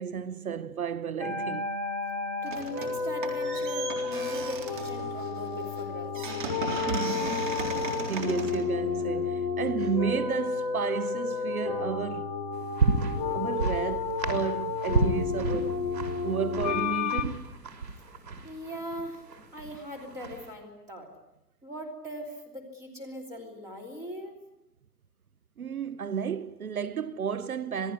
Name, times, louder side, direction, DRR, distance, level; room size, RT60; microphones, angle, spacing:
voice 1, 0.0-1.7 6.8-7.4 7.8-12.3 13.3-15.8 16.2-17.5 25.6-27.9, right 7 dB, 60° right, 1.0 m, -32 dB
sound 1, 1.2-17.2, left 5 dB, 25° left, 1.6 m, -31 dB
voice 2, 2.4-6.2 18.4-21.1 21.6-24.4, equal, 5° right, 3.0 m, -40 dB
sound 2, 2.5-3.0 3.2-9.5, right 3 dB, 30° right, 3.8 m, -37 dB
sound 3, 12.5-20.5, right 3 dB, 80° right, 6.0 m, -32 dB
27.5 x 19.0 x 9.7 m
hypercardioid pair, 175°, 48 cm